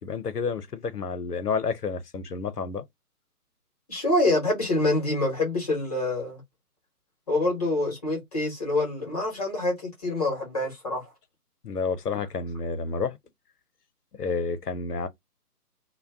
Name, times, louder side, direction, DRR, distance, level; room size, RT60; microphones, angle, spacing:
voice 1, 0.0-2.8 11.6-13.2 14.2-15.1, left 4 dB, 80° left, 0.7 m, -30 dB
voice 2, 3.9-6.4 7.3-11.0, left 2 dB, 25° left, 0.9 m, -26 dB
2.3 x 2.2 x 3.4 m
figure-of-eight pair, 145°, 46 cm